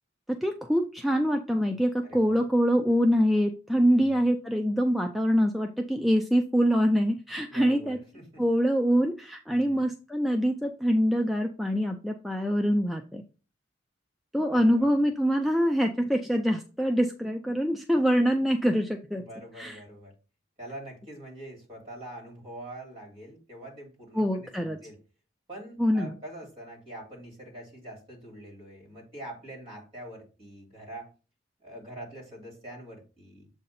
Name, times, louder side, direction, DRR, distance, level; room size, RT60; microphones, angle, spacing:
voice 1, 0.3-8.0 8.4-13.2 14.3-19.2 19.6-19.8 24.2-24.8 25.8-26.1, equal, ahead, 3 dB, 0.4 m, -25 dB
voice 2, 2.0-2.4 3.9-4.3 7.5-8.4 9.5-9.9 14.5-14.9 19.1-20.1 20.6-25.0 25.5-31.1 31.6-33.5, right 1 dB, 35° right, -1 dB, 2.9 m, -44 dB
7.4 x 2.7 x 5.6 m, 0.35 s
head